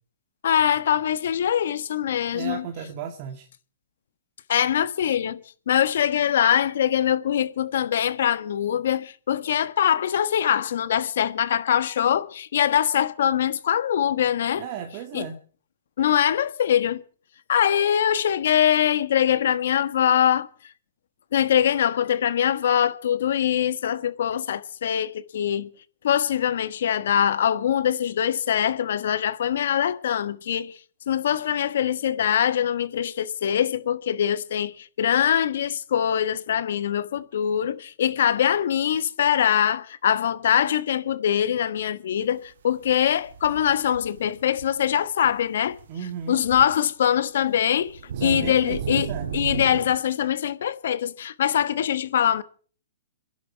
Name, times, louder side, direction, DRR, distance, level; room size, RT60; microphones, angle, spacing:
voice 1, 0.4-2.7 4.5-5.4 5.7-14.6 15.1-15.3 16.0-17.0 17.5-20.5 21.3-25.7 26.0-30.7 31.1-45.7 46.3-52.4, left 9 dB, 70° left, 1.4 m, -23 dB
voice 2, 2.3-3.5 14.6-15.4 45.9-46.5 48.1-49.3, right 8 dB, 40° right, 2.2 m, -35 dB
sound 1, 42.9-44.9 45.2-45.4 45.7-45.9 46.2-46.8 47.0-47.1 47.8-50.0, right 7 dB, 70° right, 2.2 m, -34 dB
27.5 x 11.0 x 4.6 m
hypercardioid pair, 140°, 0 cm